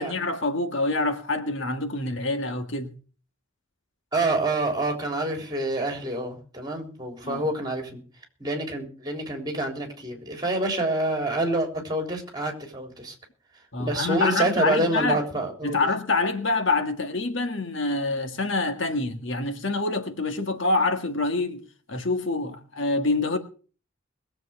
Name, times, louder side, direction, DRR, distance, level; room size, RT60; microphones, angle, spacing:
voice 1, 0.0-2.9 7.2-7.4 13.7-15.2 15.6-21.6 21.9-23.4, left 3 dB, 60° left, 1.7 m, -26 dB
voice 2, 4.1-8.0 8.4-13.1 13.8-15.9, right 2 dB, 20° right, 3.5 m, -27 dB
21.0 x 7.7 x 5.8 m
head